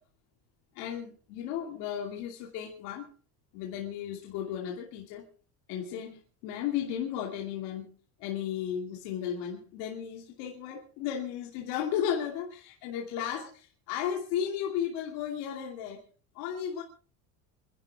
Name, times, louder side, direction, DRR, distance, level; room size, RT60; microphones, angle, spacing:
voice 1, 0.7-3.1 3.5-5.2 5.7-7.9 8.2-16.0 16.3-16.8, left 9 dB, 85° left, 2.7 m, -34 dB
27.0 x 11.5 x 3.6 m
cardioid pair, 130°, 37 cm